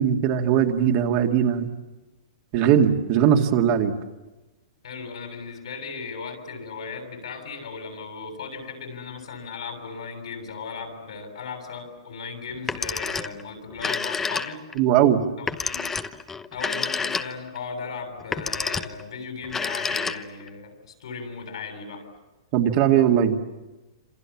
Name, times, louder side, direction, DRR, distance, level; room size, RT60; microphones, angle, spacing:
voice 1, 0.0-1.7 2.5-3.9 14.8-15.2 22.5-23.4, right 9 dB, 40° right, 3 dB, 2.1 m, -19 dB
voice 2, 4.8-14.6 15.4-16.0 16.5-22.1, left 5 dB, 80° left, 4 dB, 7.5 m, -37 dB
Telephone, 12.6-13.4 13.7-14.8 15.5-17.6 18.2-19.0 19.4-20.5, left 5 dB, 10° left, 0.9 m, -29 dB
27.5 x 26.5 x 7.3 m, 1.1 s
hypercardioid pair, 150°, 3 cm